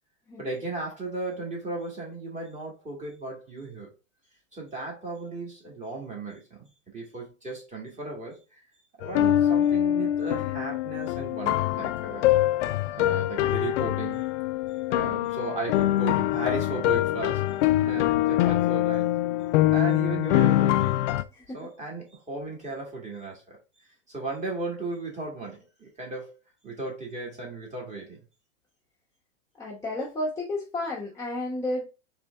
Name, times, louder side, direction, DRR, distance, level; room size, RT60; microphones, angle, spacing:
voice 1, 0.4-3.9 4.5-8.6 9.0-12.3 12.9-14.3 14.9-17.5 17.8-19.1 19.7-20.9 21.5-23.6 24.1-26.4 26.6-28.2, right 3 dB, 20° right, 1.9 m, -35 dB
sound 1, 9.0-21.2, left 13 dB, 65° left, 0.5 m, -24 dB
voice 2, 29.6-31.9, left 1 dB, 10° left, 1.0 m, -32 dB
4.3 x 3.5 x 3.6 m
supercardioid pair, 145°, 39 cm